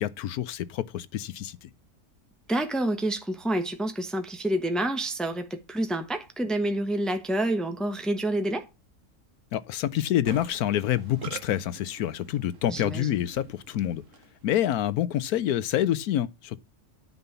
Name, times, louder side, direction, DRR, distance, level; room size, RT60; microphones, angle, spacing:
voice 1, 0.0-1.7 9.5-14.0 14.4-16.6, left 12 dB, 85° left, 1.2 m, -27 dB
voice 2, 2.5-8.6 12.7-13.2, right 1 dB, ahead, 1.0 m, -28 dB
Musical instrument, 10.2-14.5, right 7 dB, 60° right, 1.5 m, -45 dB
9.9 x 5.5 x 6.9 m
omnidirectional pair, 1.5 m